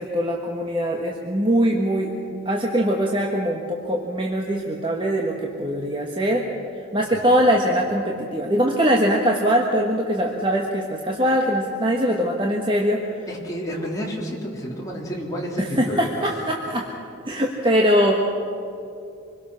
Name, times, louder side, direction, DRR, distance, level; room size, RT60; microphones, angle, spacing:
voice 1, 0.0-6.5 6.9-13.0 15.6-16.9 17.3-18.2, equal, 25° right, 0 dB, 1.5 m, -22 dB
voice 2, 13.3-16.3, equal, 15° left, -4 dB, 3.7 m, -30 dB
26.0 x 21.5 x 6.5 m, 2.7 s
head